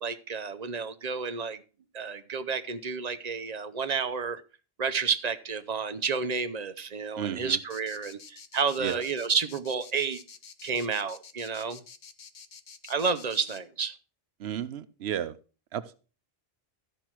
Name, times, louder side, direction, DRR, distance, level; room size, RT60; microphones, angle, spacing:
voice 1, 0.0-1.6 1.9-4.4 4.8-10.2 10.6-11.8 12.9-13.9, right 5 dB, 45° right, 11 dB, 0.8 m, -30 dB
voice 2, 7.2-7.6 8.8-9.0 14.4-15.4 15.7-15.9, right 10 dB, 85° right, 14 dB, 0.9 m, -33 dB
sound 1, 7.7-13.6, left 6 dB, 50° left, 0.8 m, -49 dB
13.5 x 5.5 x 4.5 m, 0.35 s
omnidirectional pair, 1.1 m